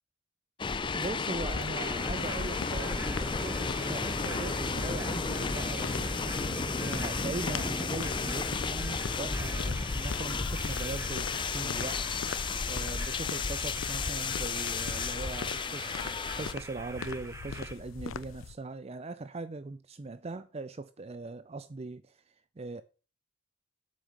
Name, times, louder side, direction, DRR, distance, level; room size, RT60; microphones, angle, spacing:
sound 1, 0.6-16.5, left 5 dB, 25° left, 0.5 m, -33 dB
voice 1, 0.9-12.1 12.7-22.8, right 3 dB, 30° right, 0.5 m, -40 dB
sound 2, 1.4-18.5, left 6 dB, 85° left, 0.5 m, -42 dB
sound 3, 1.7-17.7, right 1 dB, 15° right, 1.4 m, -40 dB
8.2 x 6.5 x 6.4 m
head